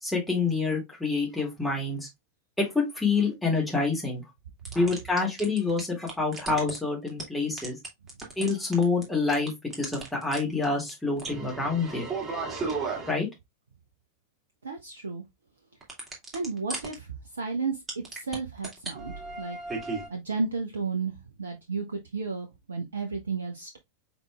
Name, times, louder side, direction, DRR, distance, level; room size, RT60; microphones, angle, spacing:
voice 1, 0.0-2.1 2.6-4.2 4.7-7.8 8.4-9.5 9.8-12.1 13.1-13.3, left 4 dB, 5° left, 2.2 m, -27 dB
sound 1, 4.7-5.8 6.1-6.8 7.1-7.2 7.6-9.0 9.3-10.4 10.6-10.7 10.9-11.0 11.2-13.1 15.8-16.9 17.9-18.4 18.6-20.1, right 4 dB, 15° right, 2.2 m, -34 dB
voice 2, 14.6-15.2 16.3-17.1 17.3-17.8 18.1-19.6 20.1-21.1 21.4-23.8, right 4 dB, 70° right, 0.7 m, -32 dB
5.2 x 4.1 x 2.3 m
figure-of-eight pair, 90°, 0 cm